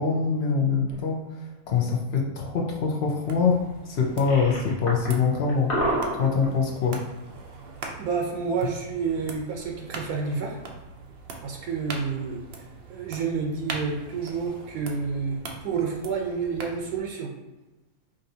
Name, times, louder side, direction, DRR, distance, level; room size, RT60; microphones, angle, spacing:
voice 1, 0.0-5.7 6.1-7.0, left 5 dB, 60° left, 0 dB, 0.7 m, -24 dB
sound 1, 0.9-1.0 4.1-5.1 5.5-6.5, equal, 40° left, 1.1 m, -28 dB
sound 2, 3.2-17.0, right 3 dB, 65° right, 0.6 m, -42 dB
voice 2, 8.0-10.6 11.4-17.3, right 5 dB, 80° right, 0 dB, 1.1 m, -29 dB
5.0 x 2.6 x 2.7 m, 1.1 s
omnidirectional pair, 1.5 m